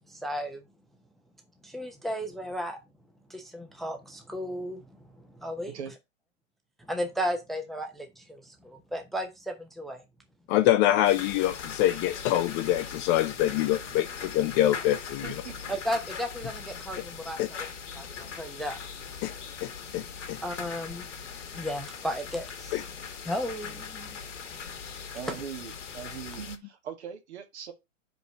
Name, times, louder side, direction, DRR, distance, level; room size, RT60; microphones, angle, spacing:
voice 1, 0.1-0.6 1.6-2.8 3.3-5.7 6.9-10.0 15.7-17.6 17.9-18.8 20.4-21.1 21.5-22.8 23.3-24.2, equal, ahead, 0.9 m, -34 dB
voice 2, 10.5-15.3 17.4-17.5 19.2-19.3 19.6-20.4 22.7-22.8, left 13 dB, 30° left, 0.7 m, -25 dB
sound 1, 11.0-26.6, left 6 dB, 65° left, 1.7 m, -40 dB
voice 3, 15.2-15.8 19.3-19.4 25.1-27.7, right 8 dB, 55° right, 1.9 m, -40 dB
5.1 x 5.1 x 6.0 m
figure-of-eight pair, 110°, 39 cm